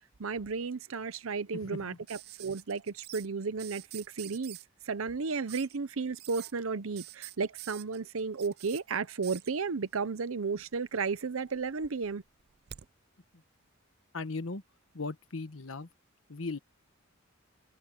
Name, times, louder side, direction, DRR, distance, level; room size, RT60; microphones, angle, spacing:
voice 1, 0.2-4.6 4.8-12.2, right 4 dB, 85° right, 0.7 m, -33 dB
voice 2, 1.6-2.0 13.3-13.4 14.1-14.6 14.9-15.9 16.3-16.6, left 3 dB, 75° left, 1.2 m, -38 dB
sound 1, 2.1-3.3 3.6-4.6 5.5-5.8 6.2-6.5 7.0-8.8 9.2-9.5 10.5-11.1 11.5-12.9 14.2-14.3, right 14 dB, 50° right, 0.4 m, -47 dB
head